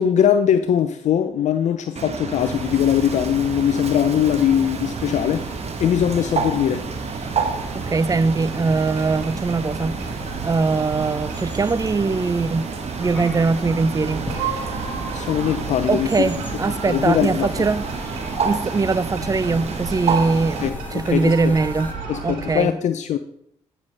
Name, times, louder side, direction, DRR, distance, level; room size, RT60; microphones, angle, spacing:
voice 1, 0.0-6.9 15.1-16.3 16.9-17.5 20.6-21.5 22.1-23.2, left 9 dB, 65° left, 0.5 m, -21 dB
Bird, 2.0-20.7, right 6 dB, 55° right, 1.0 m, -30 dB
sound 1, 2.4-21.9, left 1 dB, 15° left, 1.7 m, -37 dB
sound 2, 7.1-22.6, right 4 dB, 85° right, 2.0 m, -35 dB
voice 2, 7.7-10.2 10.4-12.7 13.0-14.8 15.9-17.9 18.4-21.9 22.2-22.7, right 4 dB, 25° right, 0.5 m, -22 dB
9.4 x 6.5 x 3.2 m
supercardioid pair, 45°, 13 cm